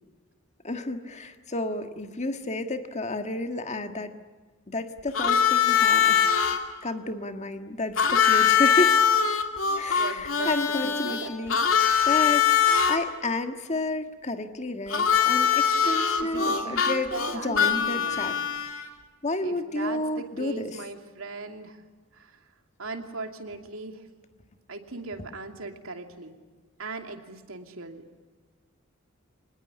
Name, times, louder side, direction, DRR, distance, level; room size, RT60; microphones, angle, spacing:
voice 1, 0.6-4.1 4.7-6.3 6.8-9.0 9.7-12.5 12.9-18.4 19.2-20.8, left 2 dB, 35° left, 7 dB, 1.7 m, -31 dB
Harmonica, 5.1-6.6 8.0-13.0 14.9-18.8, left 7 dB, 75° left, 2.5 m, -22 dB
voice 2, 10.0-10.5 10.8-11.3 16.2-18.5 19.4-21.8 22.1-22.4 22.8-24.1 24.7-26.4 26.8-28.0, right 3 dB, 85° right, 4 dB, 2.8 m, -38 dB
25.0 x 20.5 x 9.9 m, 1.4 s
head